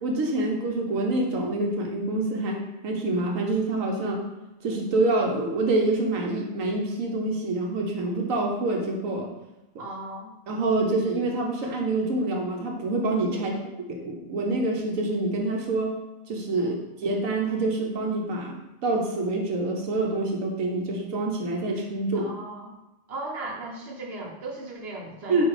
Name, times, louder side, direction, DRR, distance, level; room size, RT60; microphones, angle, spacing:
voice 1, 0.0-4.2 4.6-9.3 10.5-13.5 13.9-15.9 16.3-18.6 18.8-22.3 25.3-25.4, right 2 dB, 85° right, 0 dB, 1.3 m, -26 dB
voice 2, 9.8-10.3 13.3-13.7 16.6-16.8 22.1-22.7 23.1-25.4, right 2 dB, 55° right, -2 dB, 1.4 m, -37 dB
8.7 x 2.9 x 4.8 m, 1.0 s
omnidirectional pair, 1.3 m